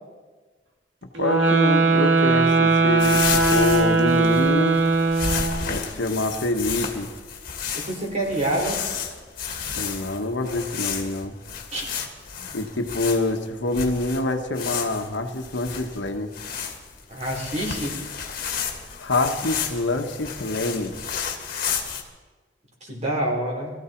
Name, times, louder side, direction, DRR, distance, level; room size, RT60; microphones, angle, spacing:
sound 1, 1.1-5.7, right 3 dB, 85° right, 2.9 m, -19 dB
voice 1, 1.2-4.8 5.7-7.1 9.8-11.3 12.5-16.3 19.0-20.9, left 2 dB, 80° left, 5 dB, 1.3 m, -26 dB
sound 2, 3.0-22.0, left 6 dB, 55° left, 2.0 m, -32 dB
voice 2, 7.7-8.8 11.7-11.8 17.1-17.9 22.8-23.7, right 1 dB, 40° right, -1 dB, 4.3 m, -27 dB
22.0 x 14.5 x 4.5 m, 1.4 s
head